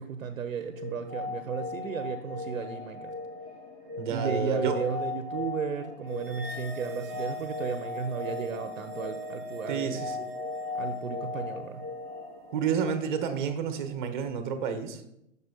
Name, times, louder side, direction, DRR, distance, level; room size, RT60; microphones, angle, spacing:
voice 1, 0.0-3.1 4.1-10.0 10.7-11.8, right 6 dB, 90° right, 9 dB, 0.6 m, -34 dB
sound 1, 0.7-13.5, left 4 dB, 15° left, 1.7 m, -38 dB
voice 2, 4.0-4.8 9.7-10.3 12.5-15.0, right 6 dB, 40° right, 9 dB, 0.7 m, -30 dB
sound 2, 6.2-12.8, right 1 dB, 15° right, 0.9 m, -42 dB
7.5 x 5.5 x 2.7 m, 0.78 s
hypercardioid pair, 140°, 39 cm